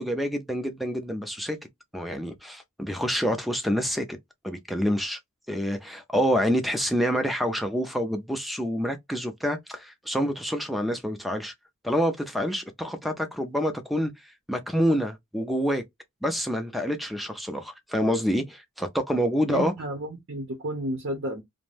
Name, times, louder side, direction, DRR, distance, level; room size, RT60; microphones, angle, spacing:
voice 1, 0.0-1.6 1.9-4.1 4.4-5.2 5.5-11.5 11.8-14.1 14.5-15.8 16.2-19.7, equal, ahead, 0.4 m, -27 dB
voice 2, 19.5-21.4, right 1 dB, 55° right, 0.7 m, -32 dB
2.5 x 2.1 x 3.2 m
head